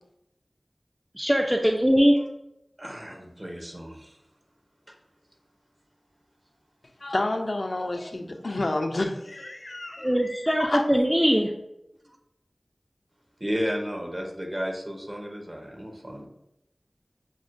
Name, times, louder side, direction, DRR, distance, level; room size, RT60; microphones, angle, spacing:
voice 1, 1.2-2.2 10.0-11.5, equal, 5° right, 1 dB, 0.3 m, -21 dB
voice 2, 2.8-4.2 4.9-5.0 8.1-8.4 12.0-12.2 13.4-16.3, equal, 40° right, 1 dB, 0.8 m, -33 dB
voice 3, 7.0-10.8, left 2 dB, 75° left, 5 dB, 0.4 m, -30 dB
6.0 x 2.1 x 2.4 m, 0.85 s
wide cardioid pair, 45°, 0 cm